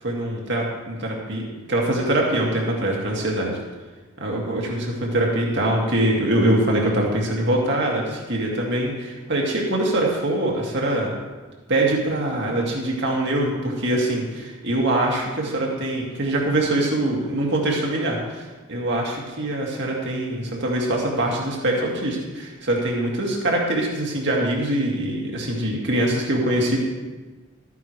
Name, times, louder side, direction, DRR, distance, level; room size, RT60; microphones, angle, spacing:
voice 1, 0.0-3.5 4.2-11.1 11.7-18.4 18.7-26.8, right 1 dB, 55° right, -2 dB, 2.2 m, -23 dB
13.5 x 9.5 x 3.3 m, 1.3 s
head